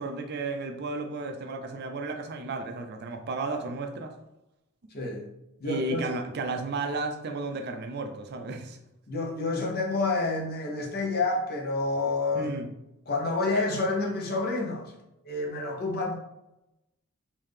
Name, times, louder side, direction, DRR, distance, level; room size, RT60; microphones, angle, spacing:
voice 1, 0.0-4.1 5.6-8.8 12.3-12.7, right 3 dB, 50° right, 5 dB, 0.4 m, -33 dB
voice 2, 4.9-5.3 5.6-6.1 9.1-12.5 13.1-14.9 15.2-16.2, left 3 dB, 45° left, 0 dB, 0.8 m, -28 dB
3.6 x 2.7 x 3.3 m, 0.89 s
head